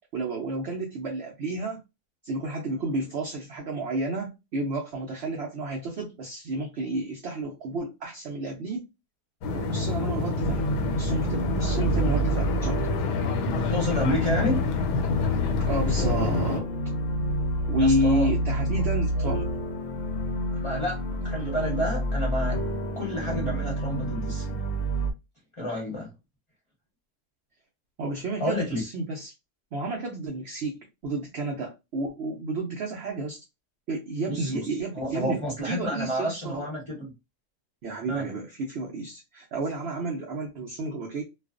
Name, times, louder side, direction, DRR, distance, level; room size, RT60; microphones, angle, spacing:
voice 1, 0.1-1.8 2.2-8.8 9.5-10.7 10.9-12.8 15.6-16.7 17.7-19.5 28.0-29.3 29.7-33.4 33.9-36.6 37.8-41.2, right 2 dB, 75° right, 0.6 m, -31 dB
sound 1, 9.4-16.6, left 3 dB, 85° left, 1.2 m, -28 dB
sound 2, 10.4-25.1, equal, 65° left, 0.8 m, -29 dB
voice 2, 13.5-14.6 17.8-18.3 19.1-19.4 20.6-22.6 23.0-24.6 25.6-26.1 28.4-28.8 34.2-34.7 34.9-37.1 38.1-38.3, equal, 25° left, 0.7 m, -30 dB
2.4 x 2.4 x 2.4 m
omnidirectional pair, 1.7 m